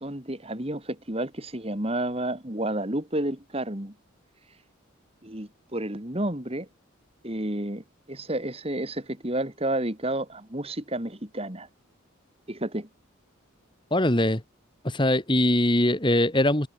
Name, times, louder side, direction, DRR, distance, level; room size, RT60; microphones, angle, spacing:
voice 1, 0.0-3.9 5.2-6.7 7.2-11.7 12.5-12.9, right 1 dB, 30° right, 2.6 m, -31 dB
voice 2, 13.9-14.4 14.8-16.7, left 1 dB, 25° left, 2.1 m, -22 dB
head